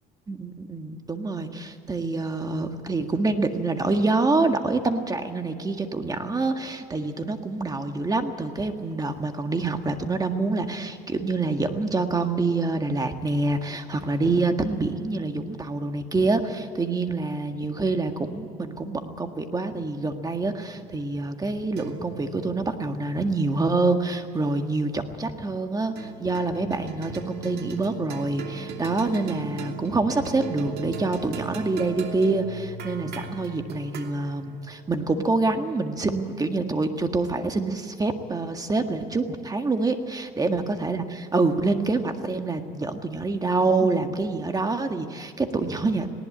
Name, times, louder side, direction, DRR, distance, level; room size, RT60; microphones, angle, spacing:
voice 1, 0.3-46.1, right 3 dB, 20° right, 6 dB, 1.8 m, -26 dB
sound 1, 20.1-24.8 26.0-36.4, right 4 dB, 70° right, 2.8 m, -39 dB
19.5 x 18.5 x 8.7 m, 2.4 s
cardioid pair, 110°, 17 cm